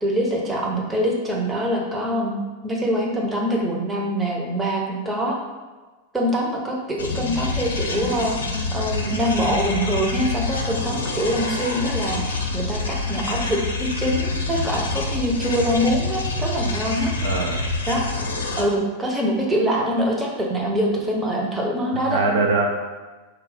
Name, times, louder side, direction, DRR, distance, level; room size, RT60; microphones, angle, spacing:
voice 1, 0.0-5.4 6.1-17.1 17.9-18.0 18.6-22.2, equal, 10° right, -2 dB, 0.7 m, -24 dB
sound 1, 7.0-18.7, left 3 dB, 70° left, 0.4 m, -27 dB
voice 2, 17.2-17.6 21.9-22.7, right 3 dB, 60° right, 1 dB, 0.4 m, -22 dB
3.9 x 2.1 x 4.1 m, 1.3 s
figure-of-eight pair, 90°, 0 cm